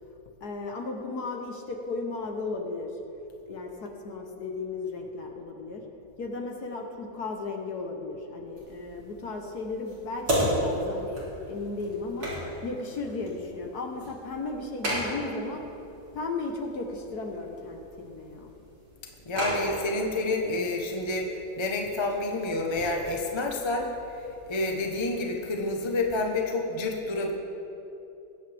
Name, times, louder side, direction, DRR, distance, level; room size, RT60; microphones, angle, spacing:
voice 1, 0.4-2.9 3.5-5.8 6.2-12.3 12.6-15.6 16.1-18.5, left 3 dB, 55° left, 2 dB, 1.5 m, -35 dB
sound 1, 8.6-26.2, equal, 50° right, 4.1 m, -36 dB
voice 2, 19.3-23.9 24.5-27.3, left 2 dB, 20° left, 1 dB, 0.7 m, -29 dB
21.5 x 8.8 x 3.5 m, 2.9 s
omnidirectional pair, 2.2 m